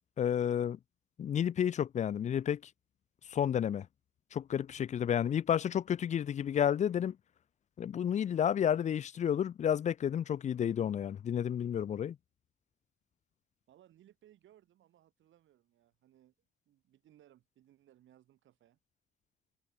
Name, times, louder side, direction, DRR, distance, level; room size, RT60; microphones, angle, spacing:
voice 1, 0.2-0.8 1.2-2.6 3.3-3.9 4.3-7.2 7.8-12.2, left 9 dB, 35° left, 0.3 m, -31 dB
voice 2, 13.7-16.3 16.7-18.8, right 12 dB, 75° right, 2.9 m, -64 dB
cardioid pair, 90°, 20 cm